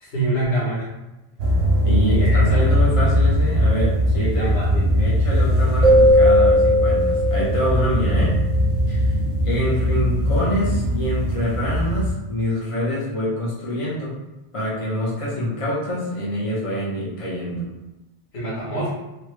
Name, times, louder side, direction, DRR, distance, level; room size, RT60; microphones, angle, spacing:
voice 1, 0.0-0.9 2.2-2.7 4.2-4.9 18.3-18.9, right 1 dB, 90° left, -6 dB, 1.4 m, -26 dB
sound 1, 1.4-12.1, equal, 85° right, 0.9 m, -20 dB
voice 2, 1.8-4.5 4.9-8.3 8.9-9.1 9.4-14.1 14.5-17.7, equal, 35° left, -7 dB, 1.0 m, -26 dB
sound 2, 5.8-8.5, equal, 35° right, 0.8 m, -17 dB
3.1 x 2.4 x 3.2 m, 0.99 s
omnidirectional pair, 1.0 m